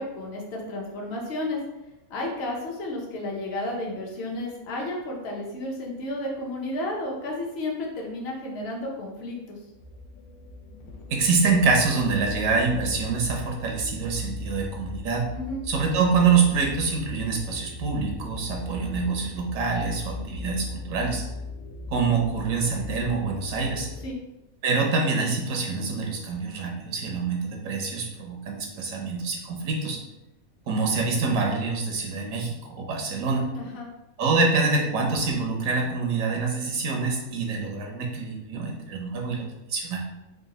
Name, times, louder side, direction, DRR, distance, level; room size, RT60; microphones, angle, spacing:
voice 1, 0.0-1.6 2.1-9.6 15.3-15.6 24.0-24.2 33.5-33.9, left 1 dB, 55° left, -1 dB, 0.9 m, -32 dB
sound 1, 9.7-24.1, left 2 dB, 85° left, 1.1 m, -38 dB
voice 2, 11.1-15.3 15.7-21.2 21.9-23.9 24.6-30.0 30.7-33.5 34.2-40.1, right 4 dB, 75° right, 1 dB, 1.0 m, -25 dB
3.7 x 2.2 x 4.0 m, 0.98 s
omnidirectional pair, 1.5 m